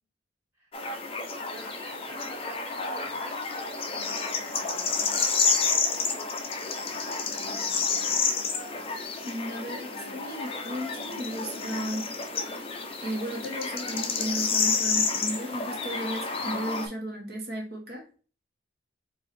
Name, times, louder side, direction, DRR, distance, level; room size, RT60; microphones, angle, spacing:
sound 1, 0.7-16.9, left 5 dB, 30° left, 0.6 m, -30 dB
voice 1, 1.5-6.2 7.2-8.2 9.8-10.3, right 1 dB, 15° right, 1.6 m, -48 dB
voice 2, 9.2-12.1 12.4-12.7 13.0-18.2, right 1 dB, 55° right, 1.2 m, -35 dB
4.8 x 2.6 x 3.4 m
head